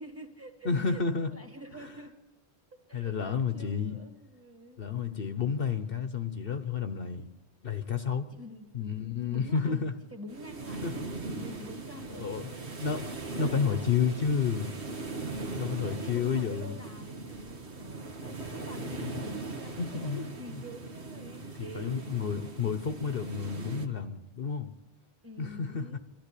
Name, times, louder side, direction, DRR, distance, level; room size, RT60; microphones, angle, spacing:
voice 1, 0.0-1.1 1.3-2.2 2.9-4.8 8.3-8.7 9.2-9.8 10.1-12.8 13.4-14.4 15.3-22.0 25.2-26.0, right 1 dB, 10° right, 5 dB, 2.1 m, -47 dB
voice 2, 0.6-1.3 2.9-4.0 4.8-7.3 7.6-8.3 8.7-9.9 10.8-10.9 12.1-12.5 12.8-13.0 13.4-14.7 15.5-16.7 18.8-19.3 19.8-20.3 20.5-20.6 21.7-24.7 25.4-26.0, left 6 dB, 60° left, 9 dB, 1.1 m, -31 dB
sound 1, 10.3-23.9, right 3 dB, 75° right, 1.9 m, -39 dB
25.0 x 14.0 x 8.4 m, 1.1 s
omnidirectional pair, 1.1 m